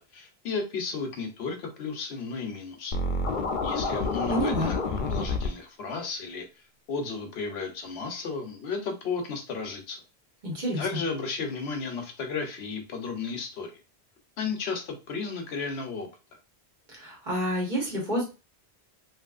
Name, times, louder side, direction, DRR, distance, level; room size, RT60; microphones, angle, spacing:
voice 1, 0.1-2.9 3.6-6.4 6.9-10.0 10.8-13.8 14.4-16.1, left 4 dB, 75° left, 4 dB, 0.9 m, -33 dB
Scratching (performance technique), 2.9-5.5, left 3 dB, 55° left, 0.6 m, -28 dB
voice 2, 4.3-4.7 10.4-11.0 16.9-18.2, right 1 dB, 45° right, -2 dB, 1.2 m, -29 dB
2.9 x 2.6 x 2.4 m, 0.30 s
omnidirectional pair, 1.1 m